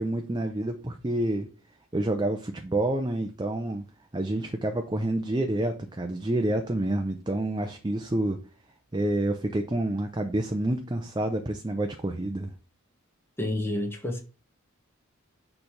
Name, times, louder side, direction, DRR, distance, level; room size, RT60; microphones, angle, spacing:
voice 1, 0.0-1.5 1.9-3.8 4.1-8.4 8.9-12.5, right 1 dB, 20° right, 0.5 m, -28 dB
voice 2, 13.4-14.2, left 1 dB, 10° left, 1.2 m, -29 dB
6.6 x 3.3 x 5.7 m
head